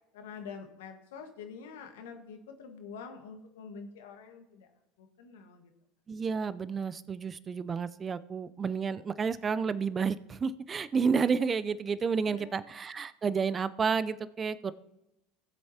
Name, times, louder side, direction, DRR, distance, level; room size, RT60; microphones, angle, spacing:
voice 1, 0.1-4.7 5.0-5.7 12.3-12.6, left 5 dB, 75° left, 5 dB, 1.5 m, -46 dB
voice 2, 6.1-14.7, right 5 dB, 30° right, 15 dB, 0.6 m, -30 dB
18.0 x 7.8 x 2.9 m, 0.86 s
hypercardioid pair, 75°, 0 cm